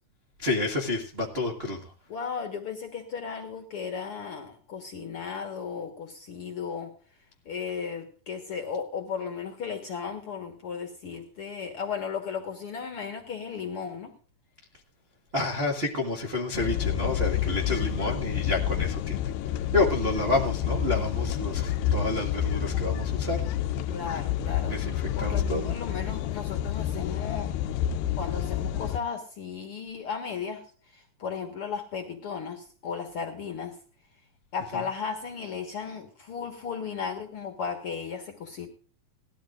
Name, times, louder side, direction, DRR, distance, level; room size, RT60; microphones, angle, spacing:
voice 1, 0.4-1.9 15.3-23.4 24.7-25.8 34.7-34.8, left 2 dB, 50° right, -1 dB, 0.7 m, -29 dB
voice 2, 2.1-6.9 7.4-14.1 17.8-18.5 23.9-24.7 25.2-27.5 28.2-33.8 34.5-38.7, left 6 dB, 55° left, 5 dB, 1.7 m, -35 dB
sound 1, 16.5-29.0, left 10 dB, 80° left, 2.2 m, -29 dB
19.0 x 13.0 x 2.5 m, 0.42 s
omnidirectional pair, 4.3 m